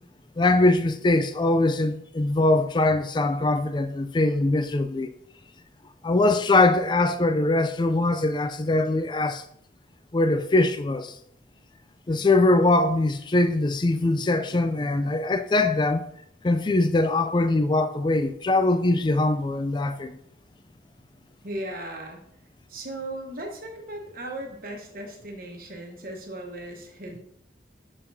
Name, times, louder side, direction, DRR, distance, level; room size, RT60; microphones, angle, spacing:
voice 1, 0.4-5.1 6.0-9.4 10.1-11.2 12.1-16.1 16.4-20.2, left 2 dB, 25° left, 0.4 m, -22 dB
voice 2, 21.4-22.2 22.7-27.2, right 1 dB, 50° right, 1.2 m, -37 dB
6.8 x 5.4 x 2.7 m
head